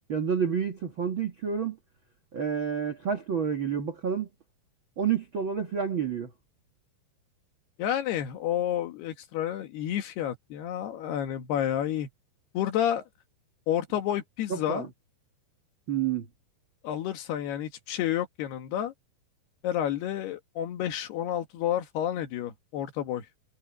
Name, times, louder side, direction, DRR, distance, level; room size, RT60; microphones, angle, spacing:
voice 1, 0.1-1.8 2.3-4.3 5.0-6.3 14.5-14.9 15.9-16.2, right 7 dB, 85° right, 1.1 m, -29 dB
voice 2, 7.8-12.1 12.5-13.0 13.7-14.9 16.8-18.9 19.6-23.3, left 11 dB, 70° left, 3.5 m, -30 dB
omnidirectional pair, 5.1 m